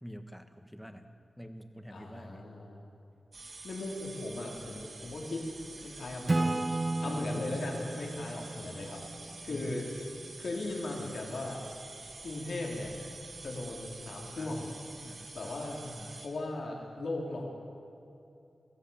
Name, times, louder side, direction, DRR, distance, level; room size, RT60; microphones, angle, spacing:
voice 1, 0.0-1.0 1.4-2.5 7.0-7.5 9.5-9.7 14.4-16.2, equal, ahead, 7 dB, 1.5 m, -47 dB
voice 2, 1.9-2.8 3.6-5.5 5.8-6.6 7.0-9.1 9.4-9.9 10.4-11.6 12.2-12.9 13.4-14.7 15.3-15.8 16.2-17.4, left 2 dB, 80° left, -1 dB, 3.9 m, -37 dB
sound 1, 3.3-16.3, right 3 dB, 60° right, 3.2 m, -48 dB
Acoustic guitar / Strum, 6.3-9.8, right 2 dB, 30° right, 0.8 m, -34 dB
24.0 x 17.0 x 7.3 m, 2.8 s
wide cardioid pair, 135°, 0 cm